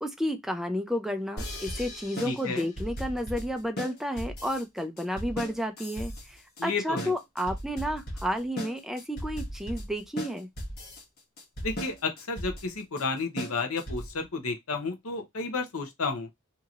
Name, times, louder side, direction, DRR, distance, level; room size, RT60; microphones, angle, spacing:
voice 1, 0.0-10.5, equal, ahead, 0.4 m, -31 dB
sound 1, 1.4-14.3, equal, 50° left, 1.1 m, -37 dB
voice 2, 2.2-2.7 6.6-7.1 11.6-16.3, left 4 dB, 85° left, 0.8 m, -32 dB
2.9 x 2.8 x 2.5 m
head